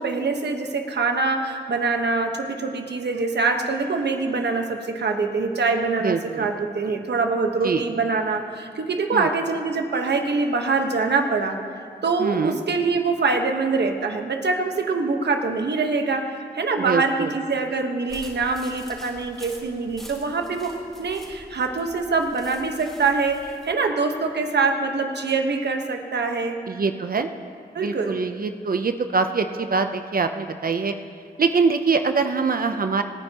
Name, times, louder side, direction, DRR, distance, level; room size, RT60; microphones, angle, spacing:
voice 1, 0.0-11.6 12.0-20.7 21.0-26.6 27.7-28.2, right 4 dB, 80° right, 4 dB, 1.2 m, -24 dB
voice 2, 6.0-6.5 7.6-7.8 9.1-9.3 12.2-12.6 16.8-17.3 26.7-27.3 27.8-30.9 31.4-33.0, right 4 dB, 60° right, 8 dB, 0.6 m, -23 dB
sound 1, 18.1-23.7, equal, ahead, 4.1 m, -45 dB
27.0 x 9.9 x 2.9 m, 2.3 s
cardioid pair, 55°, 17 cm